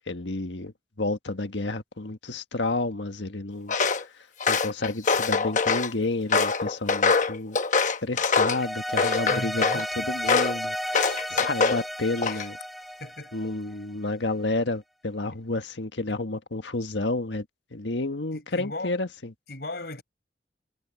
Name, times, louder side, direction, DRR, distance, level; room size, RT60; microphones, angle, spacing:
voice 1, 0.1-3.7 4.5-7.6 7.8-12.6 13.3-17.4 17.7-19.1, left 2 dB, 85° left, 1.5 m, -30 dB
Walk footsteps, 3.7-4.0 4.4-5.9 6.3-8.6 9.0-9.8 10.3-10.6 10.9-11.8 12.2-12.6, left 4 dB, 45° left, 1.0 m, -23 dB
sound 1, 8.5-13.8, equal, ahead, 3.0 m, -33 dB
voice 2, 9.3-9.8 12.3-12.5 13.0-13.3 15.3-15.4 18.3-19.0 19.5-20.0, left 2 dB, 60° left, 6.9 m, -37 dB
head